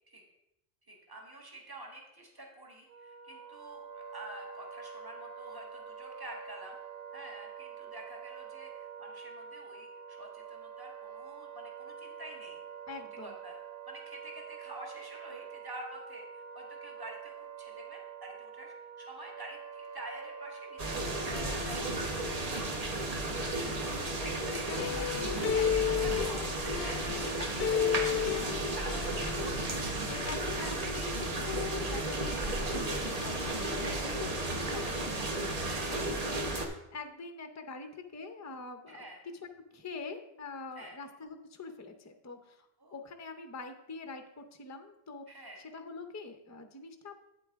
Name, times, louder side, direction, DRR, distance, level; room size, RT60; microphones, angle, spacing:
voice 1, 0.9-6.8 7.1-12.6 13.2-13.6 13.9-23.7 24.4-24.9 25.5-29.8 30.5-31.2 33.8-34.0 35.7-36.2 38.9-39.2 40.7-41.0 42.8-43.0 45.3-45.6, right 1 dB, 20° right, 0 dB, 1.4 m, -48 dB
Wind instrument woodwind instrument, 2.9-22.0, right 7 dB, 70° right, 0.8 m, -46 dB
voice 2, 12.9-13.3 23.4-23.7 24.2-26.0 26.3-26.4 27.4-28.1 30.2-33.9 34.2-36.5 36.9-39.1 39.4-45.5 45.7-47.2, left 4 dB, 20° left, 7 dB, 0.5 m, -44 dB
sound 1, 20.8-36.7, right 2 dB, 40° right, 1.0 m, -33 dB
sound 2, 24.8-27.3 27.6-29.8 30.1-30.4, left 9 dB, 70° left, 0.8 m, -33 dB
8.4 x 8.4 x 3.5 m, 0.85 s
omnidirectional pair, 1.1 m